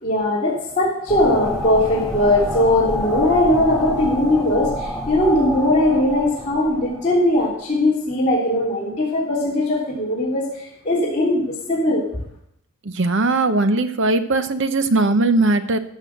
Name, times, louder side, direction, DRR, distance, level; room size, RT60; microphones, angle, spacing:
voice 1, 0.0-12.0, left 1 dB, 30° left, -8 dB, 3.2 m, -19 dB
sound 1, 1.1-7.5, left 1 dB, 5° left, 1.3 m, -28 dB
voice 2, 12.8-15.8, right 2 dB, 55° right, 10 dB, 0.9 m, -19 dB
14.0 x 6.4 x 6.6 m, 0.76 s
head